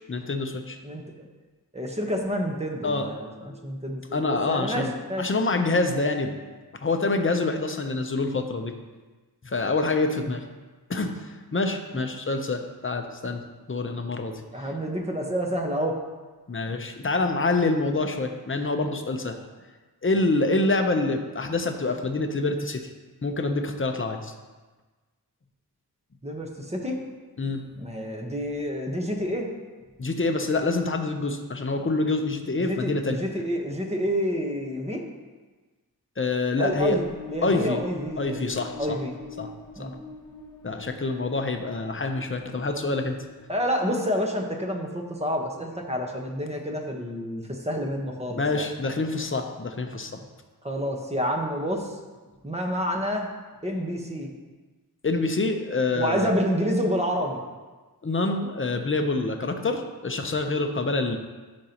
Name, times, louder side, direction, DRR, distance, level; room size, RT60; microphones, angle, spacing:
voice 1, 0.1-0.8 2.8-3.7 4.1-6.4 6.8-8.7 9.4-10.4 10.9-14.4 16.5-19.4 20.0-22.9 23.2-24.3 27.4-27.7 30.0-33.2 36.2-37.0 37.4-37.8 38.2-39.0 39.4-39.5 39.8-39.9 40.6-43.2 48.4-50.2 55.0-56.3 58.0-61.2, left 3 dB, 30° left, 5 dB, 0.7 m, -26 dB
voice 2, 0.8-1.3 1.7-5.3 10.2-10.3 11.9-12.1 14.5-16.0 26.2-27.0 27.8-29.5 32.6-35.0 36.6-39.1 39.8-39.9 43.5-48.7 50.6-52.0 52.4-53.3 53.6-54.3 55.9-57.4, equal, 15° right, 1 dB, 1.1 m, -29 dB
sound 1, 36.4-44.0, left 2 dB, 10° left, 1.3 m, -43 dB
13.5 x 5.2 x 3.0 m, 1.3 s
wide cardioid pair, 105°, 39 cm